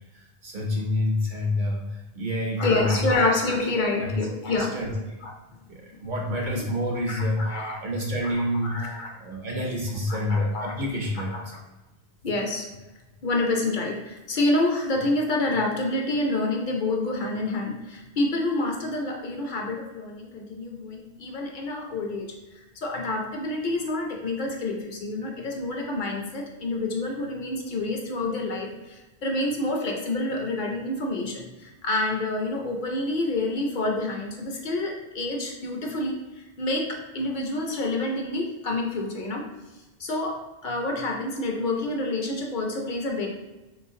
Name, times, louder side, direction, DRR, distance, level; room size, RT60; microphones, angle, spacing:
voice 1, 0.0-3.1 4.0-4.1 4.5-5.2 5.7-11.4, left 1 dB, 55° right, -1 dB, 0.7 m, -28 dB
voice 2, 2.6-4.8 5.2-5.3 6.5-6.6 7.1-7.8 8.2-8.3 8.6-9.1 10.3-10.7 11.3-11.4 12.2-12.7 13.2-22.3 22.8-36.2 36.6-39.4 40.0-43.3, left 2 dB, 55° left, 1 dB, 0.6 m, -28 dB
3.1 x 3.1 x 2.7 m, 1.1 s
omnidirectional pair, 1.1 m